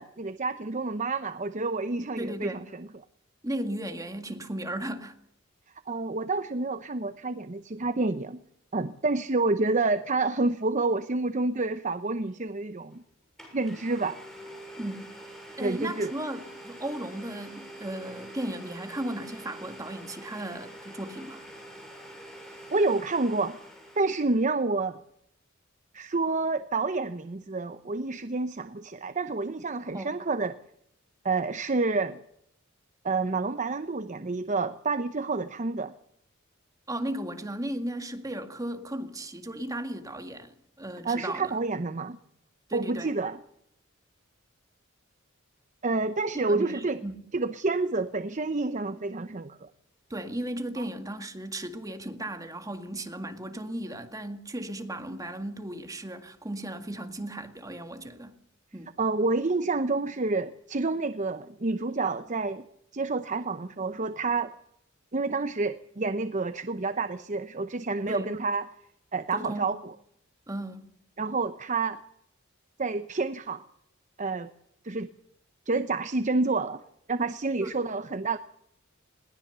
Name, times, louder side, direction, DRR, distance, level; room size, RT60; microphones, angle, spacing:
voice 1, 0.0-2.9 5.9-8.4 8.7-13.0 13.5-14.2 15.6-16.1 22.7-23.6 24.0-25.0 25.9-30.6 31.2-32.2 33.0-35.9 41.0-42.2 42.7-43.4 45.8-47.0 47.3-49.7 59.0-62.6 62.9-64.5 65.1-68.7 69.1-69.9 71.2-72.0 72.8-73.6 74.2-74.5 74.8-75.1 75.7-76.8 77.1-78.4, right 3 dB, 35° right, 0.8 m, -28 dB
voice 2, 2.2-2.7 3.4-5.2 14.8-15.1 15.6-21.4 29.9-30.1 36.9-41.6 42.7-43.1 46.3-47.3 50.1-58.4 58.7-58.9 68.1-68.3 69.3-69.7 70.5-70.9 77.6-77.8, right 1 dB, 15° right, 1.9 m, -36 dB
Domestic sounds home sounds, 12.9-13.0 13.4-24.4, right 1 dB, ahead, 7.2 m, -46 dB
21.0 x 19.0 x 6.9 m
head